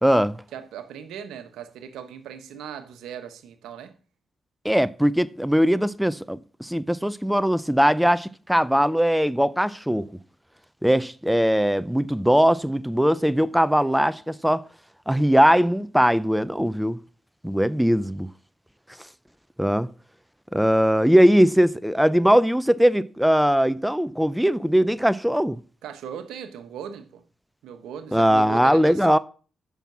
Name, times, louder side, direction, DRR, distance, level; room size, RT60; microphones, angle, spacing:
voice 1, 0.0-0.4 4.6-10.1 10.8-14.6 15.1-17.0 17.4-18.3 19.6-19.9 20.5-25.6 28.1-29.2, equal, 5° right, 0.5 m, -20 dB
voice 2, 0.5-3.9 25.8-27.2 27.6-29.1, right 8 dB, 80° right, 1.0 m, -38 dB
9.1 x 5.9 x 6.1 m
hypercardioid pair, 45°, 0 cm